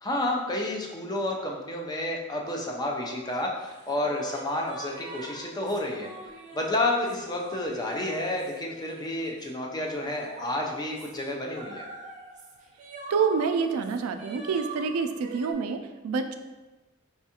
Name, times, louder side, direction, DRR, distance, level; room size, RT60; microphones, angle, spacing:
voice 1, 0.0-6.1 6.5-11.8, left 1 dB, 20° left, 0 dB, 0.4 m, -30 dB
sound 1, 2.8-15.5, right 2 dB, 35° right, 0.5 m, -44 dB
voice 2, 13.1-16.4, right 5 dB, 90° right, 8 dB, 0.3 m, -27 dB
4.2 x 2.3 x 2.8 m, 1.2 s
head